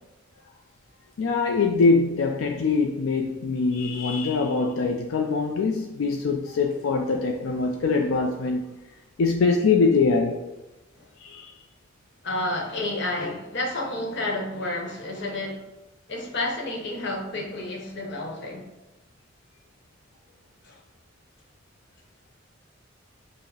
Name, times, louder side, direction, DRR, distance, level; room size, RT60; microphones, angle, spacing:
voice 1, 1.2-8.6 9.2-10.4 11.2-11.5, left 4 dB, 90° left, 0.4 m, -23 dB
voice 2, 12.2-15.6 16.1-18.7 20.6-20.8, left 2 dB, 60° left, 0.9 m, -30 dB
4.7 x 2.0 x 4.7 m
head